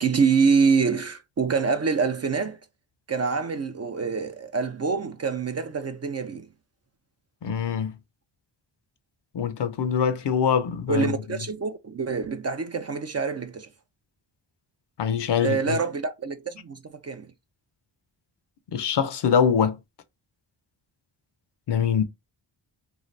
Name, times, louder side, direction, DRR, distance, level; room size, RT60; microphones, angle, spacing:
voice 1, 0.0-2.6 3.1-6.5 10.9-13.7 15.4-17.3, right 5 dB, 35° right, 0.4 m, -25 dB
voice 2, 7.4-7.9 9.3-11.1 15.0-15.8 18.7-19.8 21.7-22.0, left 7 dB, 55° left, 0.6 m, -23 dB
2.7 x 2.4 x 3.1 m
cardioid pair, 50°, 50 cm